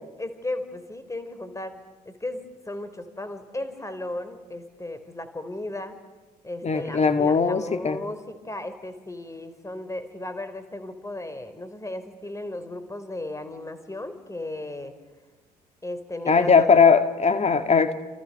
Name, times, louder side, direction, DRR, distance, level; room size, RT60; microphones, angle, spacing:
voice 1, 0.2-1.8 2.0-6.0 6.4-14.9 15.8-16.9, left 2 dB, 15° left, 11 dB, 4.4 m, -35 dB
voice 2, 6.6-8.0 16.3-17.9, left 5 dB, 30° left, 9 dB, 2.1 m, -19 dB
29.5 x 28.0 x 6.9 m, 1.2 s
figure-of-eight pair, 50°, 21 cm